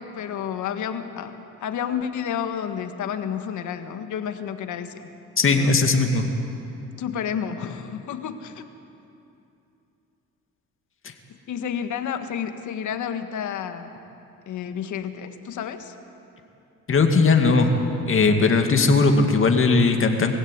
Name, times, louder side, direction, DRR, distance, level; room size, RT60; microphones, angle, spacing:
voice 1, 0.0-1.4 1.6-5.1 5.5-5.7 7.0-8.7 11.5-13.9 14.5-15.9, left 8 dB, 75° left, 8 dB, 1.6 m, -30 dB
voice 2, 5.4-6.3 16.9-17.7 18.1-20.3, left 4 dB, 45° left, 4 dB, 2.4 m, -18 dB
21.5 x 16.0 x 9.5 m, 2.7 s
cardioid pair, 90°, 30 cm